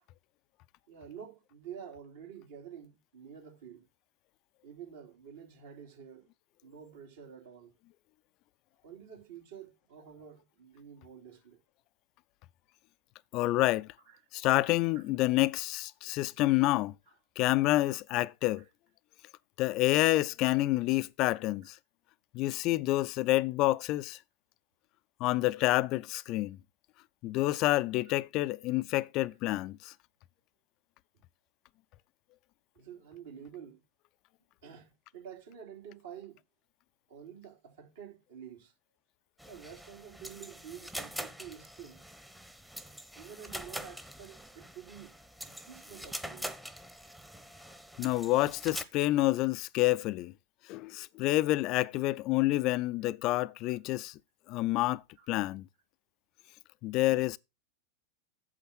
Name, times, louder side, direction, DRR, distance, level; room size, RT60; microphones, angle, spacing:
voice 1, 0.9-3.9 4.6-6.3 6.6-7.7 8.8-11.6 32.8-33.8 34.6-36.4 37.1-38.7 39.5-42.0 43.2-45.1 45.5-46.5 52.0-52.1 55.2-55.3, right 8 dB, 65° right, 3.0 m, -49 dB
voice 2, 13.3-13.9 14.3-16.9 17.4-18.6 19.6-21.8 22.3-24.2 25.2-26.6 27.2-29.9 48.0-50.3 50.7-54.2 54.5-55.0 55.3-55.7 56.8-57.4, left 18 dB, 40° left, 0.5 m, -28 dB
sound 1, 39.4-48.8, equal, 5° right, 1.0 m, -44 dB
8.6 x 7.5 x 4.3 m
figure-of-eight pair, 90°, 0 cm